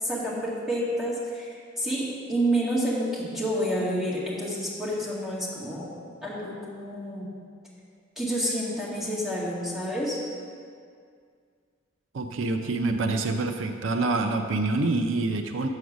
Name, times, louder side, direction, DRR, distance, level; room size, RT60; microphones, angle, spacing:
voice 1, 0.0-5.9 6.2-7.3 8.2-10.2, equal, ahead, -7 dB, 1.9 m, -29 dB
voice 2, 12.1-15.7, right 3 dB, 80° right, 6 dB, 0.5 m, -26 dB
7.0 x 6.6 x 6.2 m, 2.2 s
head